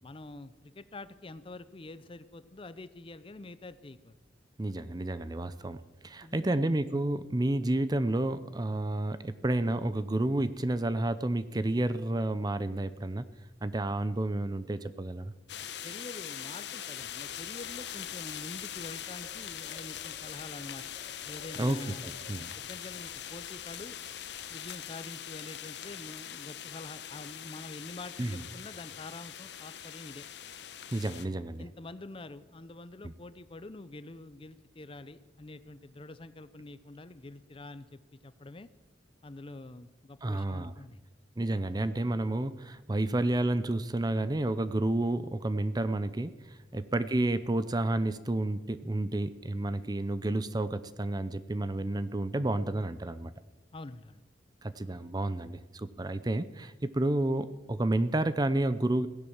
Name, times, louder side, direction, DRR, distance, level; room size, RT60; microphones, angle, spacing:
voice 1, 0.0-4.1 6.2-6.7 15.8-20.8 21.2-22.1 22.4-24.0 24.5-30.2 31.6-38.7 39.2-41.0 46.7-46.8 53.7-54.2 54.8-54.9, left 2 dB, 30° left, 14 dB, 0.6 m, -46 dB
voice 2, 4.6-5.8 6.0-13.3 13.6-15.3 21.6-21.8 22.0-22.5 28.2-28.4 30.9-31.6 40.2-40.7 41.4-46.3 46.7-53.3 54.6-59.1, right 1 dB, 20° right, 14 dB, 0.5 m, -30 dB
sound 1, 15.5-31.3, left 10 dB, 60° left, 0.9 m, -42 dB
Bird, 17.0-24.7, left 1 dB, ahead, 2.5 m, -59 dB
16.0 x 11.0 x 7.4 m, 1.1 s
head